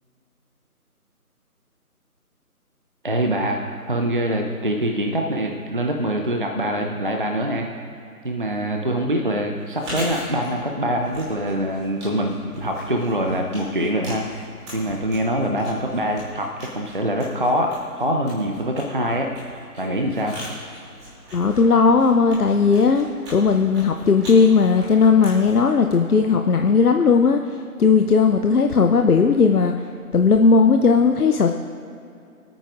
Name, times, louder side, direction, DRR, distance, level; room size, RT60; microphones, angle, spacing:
voice 1, 3.0-7.7 8.2-19.3 19.8-20.4, equal, 35° right, 2 dB, 0.6 m, -24 dB
Chewing mastication, 9.6-26.5, equal, 20° right, 2.7 m, -40 dB
voice 2, 21.3-31.5, left 5 dB, 75° left, 5 dB, 0.7 m, -17 dB
27.0 x 9.0 x 2.5 m, 2.6 s
figure-of-eight pair, 160°, 45 cm